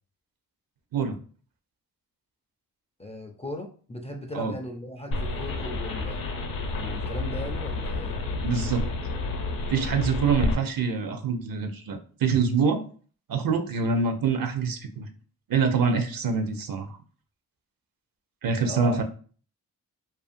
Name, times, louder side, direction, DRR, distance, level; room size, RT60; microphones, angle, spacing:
voice 1, 3.0-6.2 6.8-8.2 18.5-19.0, left 1 dB, 15° left, 3 dB, 0.3 m, -37 dB
sound 1, 5.1-10.6, left 2 dB, 60° left, 0.6 m, -30 dB
voice 2, 8.4-8.8 9.7-12.8 13.3-15.1 15.5-17.0 18.4-19.0, right 5 dB, 55° right, 7 dB, 0.6 m, -25 dB
2.5 x 2.4 x 2.5 m, 0.41 s
supercardioid pair, 45°, 41 cm